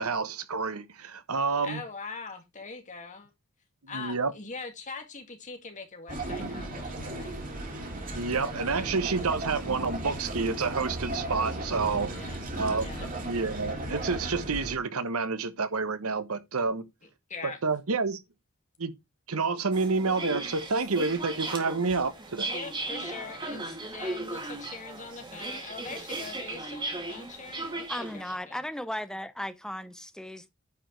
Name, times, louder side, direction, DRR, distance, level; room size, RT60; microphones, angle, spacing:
voice 1, 0.0-1.8 3.8-4.3 8.1-12.1 12.6-12.8 13.2-16.8 17.4-18.2 18.8-18.9 19.3-22.5, right 4 dB, 85° right, 1.1 m, -29 dB
voice 2, 1.6-3.3 3.9-7.3 12.1-12.4 12.8-13.1 17.0-17.6 22.5-28.6, left 4 dB, 35° left, 2.2 m, -42 dB
sound 1, 6.1-14.8, right 1 dB, 40° right, 2.6 m, -35 dB
sound 2, 19.7-28.3, right 2 dB, 20° right, 2.0 m, -37 dB
voice 3, 27.9-30.5, left 1 dB, 5° left, 0.7 m, -36 dB
9.8 x 4.9 x 4.5 m
head